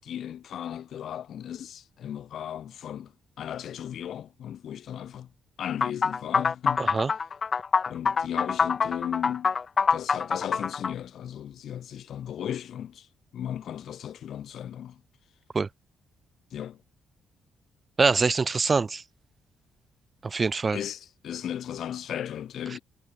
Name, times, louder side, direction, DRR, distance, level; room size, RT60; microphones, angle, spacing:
voice 1, 0.0-3.1 3.4-5.3 5.6-7.0 7.9-9.5 9.9-13.1 13.3-15.0 16.5-16.8 20.7-22.8, left 10 dB, 65° left, 7.9 m, -36 dB
sound 1, 5.8-10.9, left 5 dB, 40° left, 2.7 m, -25 dB
voice 2, 6.8-7.1 15.5-15.7 18.0-19.0 20.2-20.8 22.7-22.8, right 4 dB, 30° right, 3.0 m, -24 dB
cardioid pair, 90°, 0 cm